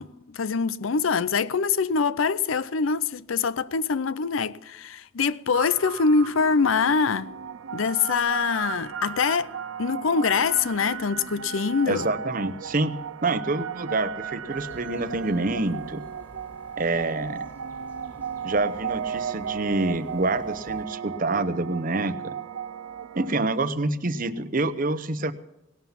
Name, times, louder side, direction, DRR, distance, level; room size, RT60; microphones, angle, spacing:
voice 1, 0.0-7.3 7.7-9.5 9.8-12.1, left 5 dB, 80° left, 0.6 m, -24 dB
sound 1, 5.5-23.4, right 7 dB, 80° right, 0.6 m, -35 dB
voice 2, 11.9-13.0 13.2-16.0 16.8-17.4 18.4-22.4 23.1-25.3, right 2 dB, 45° right, 0.8 m, -27 dB
sound 2, 14.5-20.8, equal, 10° left, 3.0 m, -52 dB
18.5 x 11.5 x 5.7 m
head